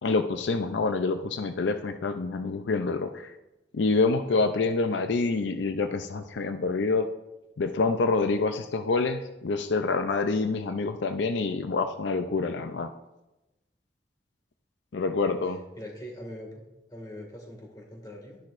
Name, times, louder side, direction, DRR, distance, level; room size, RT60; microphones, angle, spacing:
voice 1, 0.0-3.3 3.7-7.1 7.6-12.9 14.9-15.6, left 3 dB, 80° left, 8 dB, 0.5 m, -27 dB
voice 2, 15.8-16.5 16.9-18.4, equal, 20° left, 0 dB, 2.0 m, -42 dB
11.5 x 10.5 x 2.5 m, 0.98 s
head